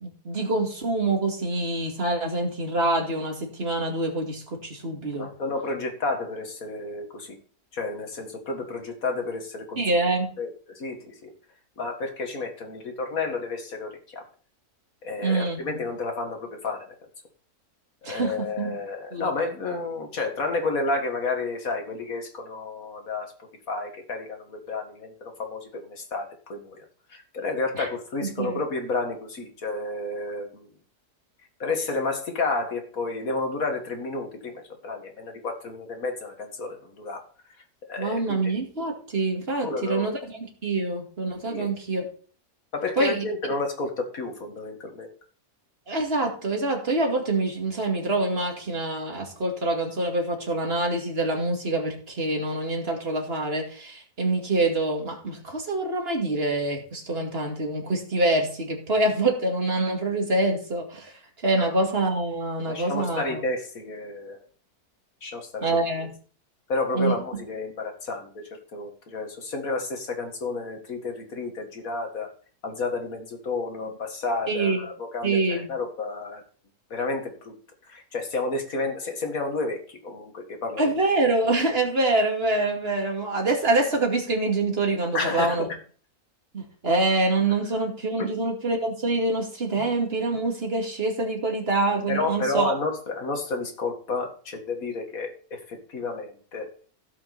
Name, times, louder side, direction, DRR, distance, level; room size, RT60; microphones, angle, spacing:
voice 1, 0.0-5.3 9.8-10.3 15.2-15.8 18.0-18.7 19.1-19.3 27.7-27.9 28.2-28.6 38.0-42.1 43.0-43.2 45.9-61.1 61.4-63.4 65.6-66.1 66.9-67.2 74.5-74.8 75.2-75.7 80.8-85.7 86.5-92.7, right 2 dB, 40° right, 1 dB, 2.6 m, -25 dB
voice 2, 5.2-7.4 7.7-9.8 10.4-11.3 11.8-14.2 15.0-16.9 18.0-30.7 31.6-37.2 37.9-38.5 39.6-40.1 41.5-41.7 42.7-45.1 61.5-61.6 62.7-64.4 65.2-65.8 66.7-68.4 68.7-72.3 72.6-76.4 76.9-77.5 77.9-80.9 85.1-85.6 88.2-88.3 89.8-89.9 92.1-96.7, left 3 dB, 65° left, 4 dB, 2.3 m, -31 dB
16.5 x 5.8 x 4.2 m, 0.43 s
omnidirectional pair, 1.6 m